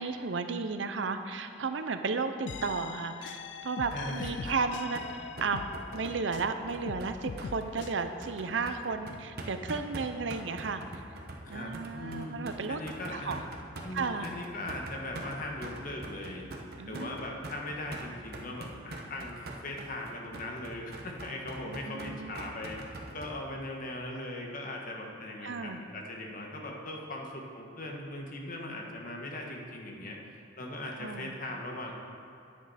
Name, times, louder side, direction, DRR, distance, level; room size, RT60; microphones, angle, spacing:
voice 1, 0.0-5.6 5.9-11.0 11.5-12.8 13.1-13.4 13.9-14.3 16.8-17.2 21.7-22.3 25.4-25.8 31.0-31.3, right 4 dB, 75° right, 8 dB, 0.6 m, -34 dB
sound 1, 2.5-6.5 6.9-7.9, left 5 dB, 65° left, 0.4 m, -42 dB
voice 2, 3.9-4.5 11.4-12.4 12.7-13.4 13.8-16.5 16.9-30.2 30.6-31.9, left 1 dB, 45° left, 0 dB, 1.4 m, -39 dB
sound 2, 3.9-23.3, right 1 dB, 55° right, 1.1 m, -43 dB
10.0 x 9.2 x 4.2 m, 2.8 s
head